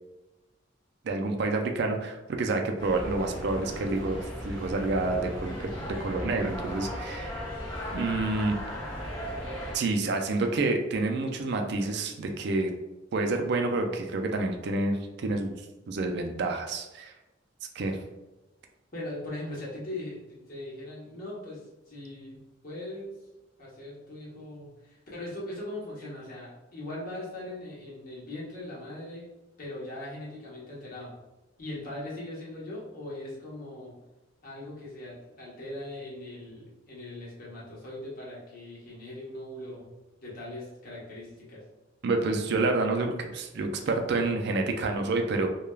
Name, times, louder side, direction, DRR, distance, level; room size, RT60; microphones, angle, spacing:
voice 1, 1.0-7.4 7.9-8.6 9.7-12.7 13.1-15.5 15.9-17.1 17.8-18.0 42.0-45.5, right 3 dB, 60° right, 4 dB, 0.4 m, -28 dB
sound 1, 2.8-9.8, equal, 25° left, 0.7 m, -36 dB
voice 2, 18.9-21.6 21.9-23.1 23.6-29.3 29.6-31.1 31.6-34.0 34.4-39.9 40.2-41.6, left 1 dB, 50° left, -6 dB, 1.0 m, -40 dB
3.2 x 2.3 x 2.3 m, 1.0 s
head